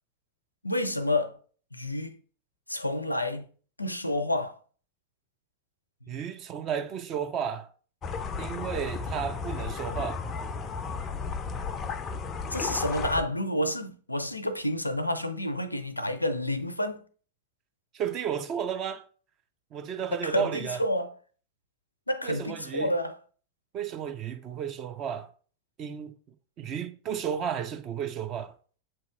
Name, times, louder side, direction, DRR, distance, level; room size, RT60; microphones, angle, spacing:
voice 1, 0.6-1.4 1.7-2.2 2.7-3.5 3.8-4.6 6.1-6.2 12.5-17.1 20.1-21.1 22.1-23.2, left 1 dB, 85° left, 0.5 m, -29 dB
voice 2, 6.1-7.7 8.4-10.2 17.9-19.0 19.7-20.8 22.2-22.9 23.7-25.3 25.8-26.2 26.6-28.5, right 8 dB, 35° right, 0.6 m, -33 dB
sound 1, 8.0-13.2, left 5 dB, 25° left, 0.4 m, -34 dB
7.4 x 2.9 x 2.4 m
figure-of-eight pair, 90°, 0 cm